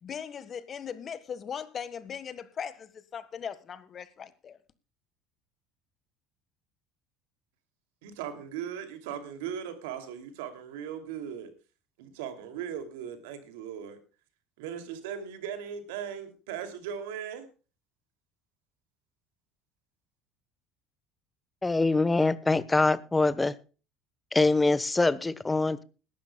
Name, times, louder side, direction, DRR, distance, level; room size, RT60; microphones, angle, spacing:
voice 1, 0.0-4.6, left 7 dB, 40° left, 1.5 m, -39 dB
voice 2, 8.0-11.5 12.0-14.0 14.6-17.5, right 8 dB, 85° right, 2.7 m, -38 dB
voice 3, 21.6-23.5 24.3-25.8, left 3 dB, 15° left, 1.0 m, -24 dB
21.0 x 12.0 x 2.3 m
supercardioid pair, 90°, 0 cm